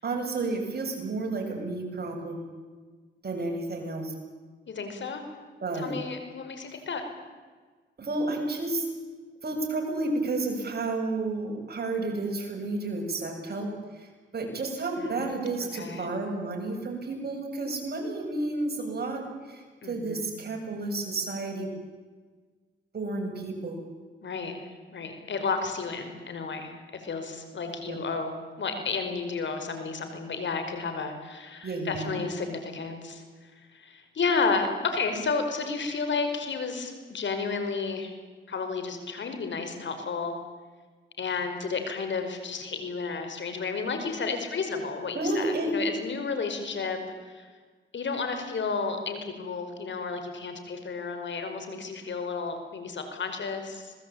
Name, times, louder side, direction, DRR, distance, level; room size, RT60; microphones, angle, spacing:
voice 1, 0.0-2.4 3.2-4.1 5.6-6.0 8.0-8.8 9.4-19.2 19.5-21.7 22.9-23.8 27.9-28.0 31.6-32.2 45.1-45.7, right 2 dB, 50° right, 2 dB, 7.7 m, -31 dB
voice 2, 4.7-5.2 5.7-7.0 15.0-15.3 15.6-16.1 19.8-20.3 24.2-24.6 24.9-38.1 38.5-40.4 41.2-47.0 47.2-47.5 47.9-53.9, left 4 dB, 65° left, 6 dB, 5.2 m, -32 dB
26.5 x 20.5 x 8.8 m, 1.4 s
cardioid pair, 70°, 21 cm